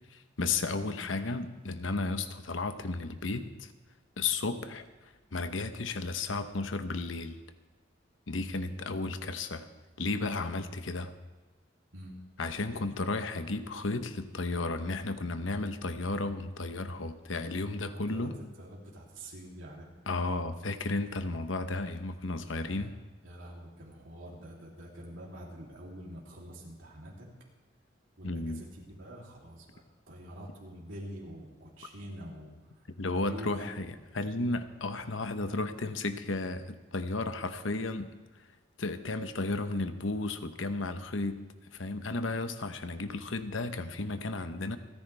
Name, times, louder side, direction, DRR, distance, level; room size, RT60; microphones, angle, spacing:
voice 1, 0.1-3.7 4.2-7.4 8.3-9.7 10.0-11.1 12.4-18.4 20.1-22.9 28.2-28.6 33.0-38.1 38.8-41.4 41.7-44.8, left 3 dB, 85° left, 9 dB, 1.0 m, -33 dB
voice 2, 17.8-18.3 18.6-19.9 22.5-22.9 23.2-27.3 28.2-32.5 33.1-33.6, equal, 85° right, -3 dB, 3.2 m, -46 dB
28.0 x 10.0 x 3.4 m, 1.2 s
head